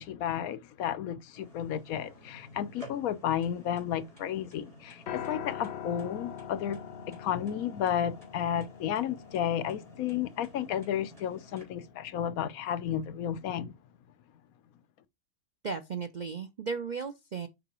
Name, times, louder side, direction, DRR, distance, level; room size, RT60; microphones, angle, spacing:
voice 1, 0.0-13.7, left 9 dB, 75° left, 1.1 m, -32 dB
sound 1, 1.3-11.6, right 1 dB, 25° right, 3.6 m, -53 dB
Piano, 5.1-13.3, left 8 dB, 55° left, 0.8 m, -44 dB
voice 2, 15.6-17.5, right 5 dB, 75° right, 0.4 m, -35 dB
7.7 x 4.8 x 3.0 m
omnidirectional pair, 1.5 m